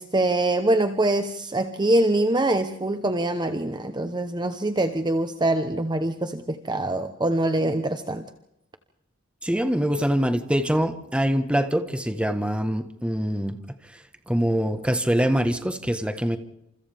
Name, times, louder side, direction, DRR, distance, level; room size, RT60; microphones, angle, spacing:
voice 1, 0.0-8.2, right 1 dB, 20° right, 8 dB, 1.0 m, -24 dB
voice 2, 9.4-13.6 14.3-16.4, equal, 5° right, 8 dB, 1.4 m, -24 dB
29.0 x 28.0 x 3.6 m, 0.82 s
head